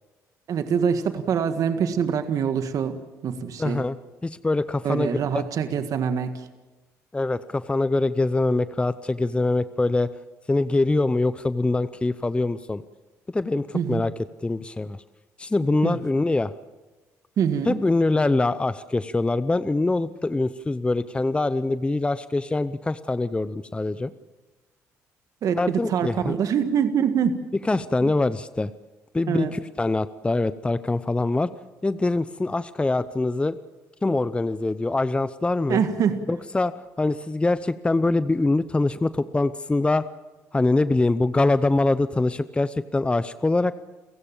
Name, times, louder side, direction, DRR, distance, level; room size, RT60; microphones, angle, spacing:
voice 1, 0.5-3.0 3.2-3.8 4.8-6.4 13.7-14.0 15.8-16.0 17.4-17.8 25.4-27.3 29.3-29.5 35.7-36.2, right 7 dB, 60° right, 8 dB, 1.7 m, -24 dB
voice 2, 3.6-4.0 4.2-5.4 7.1-10.1 10.5-12.8 13.3-14.1 14.4-15.0 15.4-16.5 17.7-24.1 25.5-26.4 27.6-28.7 29.1-31.5 31.8-33.6 34.0-35.8 36.3-36.7 37.0-40.0 40.5-43.7, left 2 dB, 15° left, 14 dB, 0.8 m, -24 dB
29.5 x 16.0 x 7.3 m, 1.2 s
supercardioid pair, 75°, 7 cm